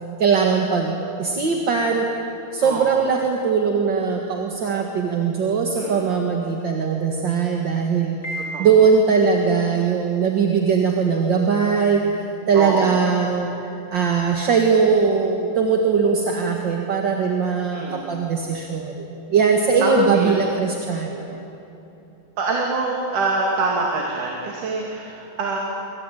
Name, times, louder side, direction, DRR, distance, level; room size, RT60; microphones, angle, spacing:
voice 1, 0.2-2.1 2.5-13.5 13.9-21.4, right 5 dB, 40° right, 2 dB, 2.0 m, -20 dB
voice 2, 2.6-3.1 5.8-6.0 8.5-8.7 12.5-13.0 17.7-18.2 19.8-20.4 22.4-25.6, right 3 dB, 70° right, -1 dB, 4.0 m, -25 dB
Piano, 8.2-9.3, equal, 25° left, 6.5 m, -33 dB
27.0 x 24.0 x 9.2 m, 2.9 s
omnidirectional pair, 3.8 m